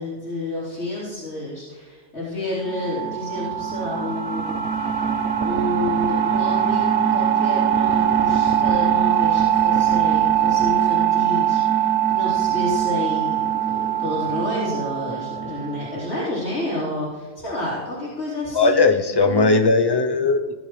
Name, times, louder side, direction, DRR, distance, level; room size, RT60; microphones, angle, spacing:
voice 1, 0.0-5.0 5.4-18.9 19.2-19.6, left 1 dB, 70° left, -10 dB, 5.2 m, -30 dB
sound 1, 2.7-16.1, right 9 dB, 80° right, 1.2 m, -21 dB
voice 2, 18.5-20.5, left 3 dB, 25° left, 6 dB, 0.8 m, -18 dB
19.0 x 11.0 x 3.4 m, 1.3 s
omnidirectional pair, 1.2 m